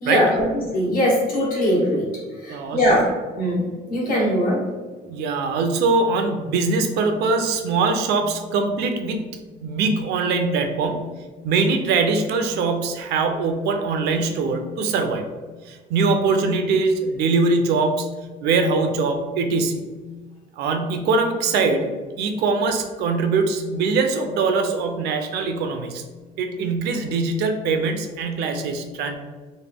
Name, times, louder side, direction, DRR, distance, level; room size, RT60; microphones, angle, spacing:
voice 1, 0.0-2.1 2.4-3.0 3.4-4.6, equal, 55° left, -4 dB, 1.3 m, -21 dB
voice 2, 2.5-2.9 5.1-11.2 11.4-15.3 15.7-18.1 18.4-19.9 20.6-26.0 26.4-29.2, right 4 dB, 80° right, 6 dB, 0.5 m, -22 dB
3.0 x 2.2 x 3.4 m, 1.3 s
cardioid pair, 110°, 17 cm